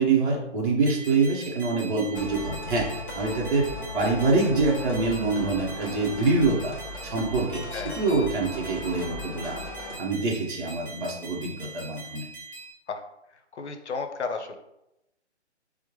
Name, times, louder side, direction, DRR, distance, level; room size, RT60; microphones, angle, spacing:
voice 1, 0.0-2.9 3.1-6.7 7.0-9.6 10.0-12.2, right 3 dB, 45° right, -2 dB, 0.8 m, -25 dB
sound 1, 0.9-12.7, right 3 dB, 5° left, 1.0 m, -42 dB
sound 2, 2.1-10.0, left 1 dB, 30° left, 0.9 m, -37 dB
voice 2, 13.5-14.6, left 4 dB, 75° left, 6 dB, 0.6 m, -33 dB
4.3 x 2.1 x 2.9 m, 0.88 s
figure-of-eight pair, 140°, 34 cm